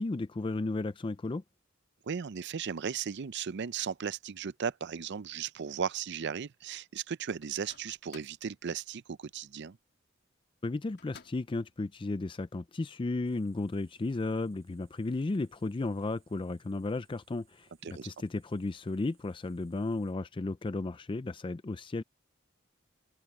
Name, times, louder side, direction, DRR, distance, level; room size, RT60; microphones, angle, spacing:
voice 1, 0.0-1.4 10.6-22.0, left 2 dB, 25° left, 0.4 m, -34 dB
voice 2, 2.1-9.8 17.8-18.1, right 7 dB, 60° right, 0.5 m, -36 dB
Microwave oven, 7.4-8.5 11.0-11.6, left 6 dB, 55° left, 3.1 m, -55 dB
sound 1, 13.2-20.1, right 9 dB, 75° right, 5.8 m, -71 dB
head